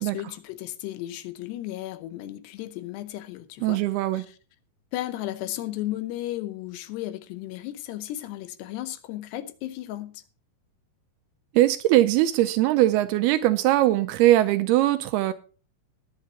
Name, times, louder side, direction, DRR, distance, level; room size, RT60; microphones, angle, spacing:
voice 1, 0.0-3.8 4.1-4.4 4.9-10.2, left 14 dB, 80° left, 3.0 m, -34 dB
voice 2, 3.6-4.2 11.5-15.3, right 15 dB, 80° right, 2.4 m, -21 dB
20.0 x 8.6 x 2.8 m
omnidirectional pair, 4.9 m